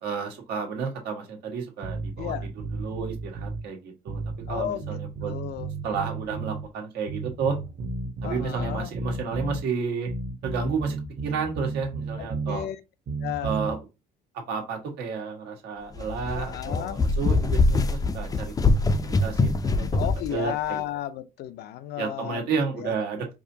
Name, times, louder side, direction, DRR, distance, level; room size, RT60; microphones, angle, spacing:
voice 1, 0.0-2.3 2.7-4.2 4.5-7.6 8.2-10.1 10.4-11.0 11.2-12.7 13.4-13.8 14.5-20.8 22.0-23.3, right 5 dB, 75° right, 1.5 m, -31 dB
sound 1, 1.8-3.6 4.1-6.7 7.1-9.6 10.1-12.6 13.1-13.7, right 3 dB, 45° right, 1.0 m, -33 dB
voice 2, 2.2-2.5 4.5-5.7 8.2-8.9 12.2-12.8 13.2-13.6 16.3-17.0 20.0-22.4 22.8-22.9, left 12 dB, 75° left, 0.6 m, -33 dB
sound 2, 16.0-20.3, left 3 dB, 20° left, 0.4 m, -23 dB
4.7 x 2.7 x 2.7 m
cardioid pair, 110°, 17 cm